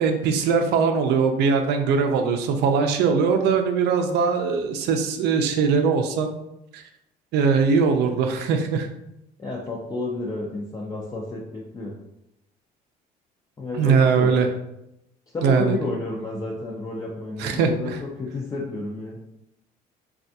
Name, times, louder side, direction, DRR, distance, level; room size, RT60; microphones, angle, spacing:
voice 1, 0.0-6.3 6.7-6.8 7.3-8.9 13.7-14.5 15.4-15.8 17.4-18.0, right 5 dB, 80° right, 6 dB, 0.5 m, -21 dB
voice 2, 9.4-11.9 13.6-14.3 15.3-19.2, left 2 dB, 20° left, -3 dB, 0.5 m, -31 dB
3.3 x 2.3 x 2.7 m, 0.84 s
cardioid pair, 110°, 17 cm